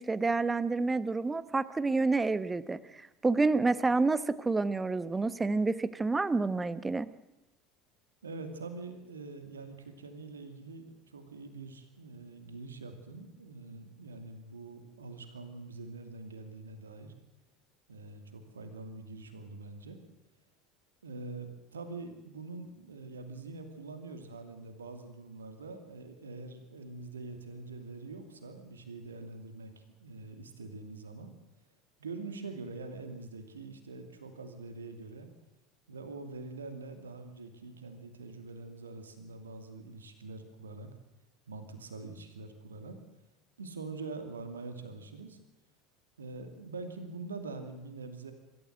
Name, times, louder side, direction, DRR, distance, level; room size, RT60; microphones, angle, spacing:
voice 1, 0.0-7.1, right 3 dB, 15° right, 16 dB, 1.1 m, -29 dB
voice 2, 8.2-17.1 17.9-20.0 21.0-29.7 30.0-31.3 32.0-35.3 35.9-40.9 41.5-43.0 43.6-45.4 46.2-48.3, right 3 dB, 80° right, 8 dB, 2.5 m, -44 dB
25.5 x 14.0 x 7.9 m, 0.96 s
figure-of-eight pair, 70°, 0 cm